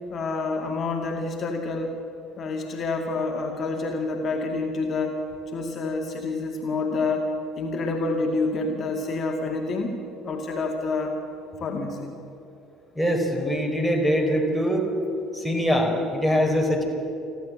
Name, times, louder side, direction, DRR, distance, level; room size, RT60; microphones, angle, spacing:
voice 1, 0.1-1.9 2.4-5.2 5.5-7.3 7.6-10.0 10.2-11.2 11.6-12.1, left 3 dB, 40° left, 2 dB, 2.2 m, -28 dB
voice 2, 12.9-14.8 15.3-16.8, equal, 5° right, 2 dB, 4.7 m, -23 dB
29.0 x 11.5 x 7.8 m, 2.9 s
figure-of-eight pair, 60°, 0 cm